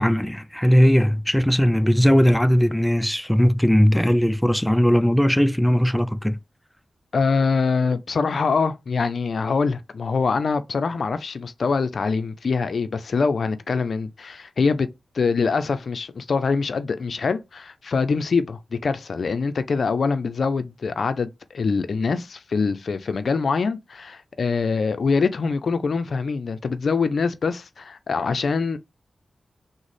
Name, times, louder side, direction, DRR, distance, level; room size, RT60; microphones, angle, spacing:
voice 1, 0.0-6.4, equal, 5° left, 0.4 m, -18 dB
voice 2, 7.1-14.9 15.1-28.8, left 4 dB, 75° left, 0.4 m, -24 dB
3.8 x 2.0 x 3.2 m
cardioid pair, 40°, 0 cm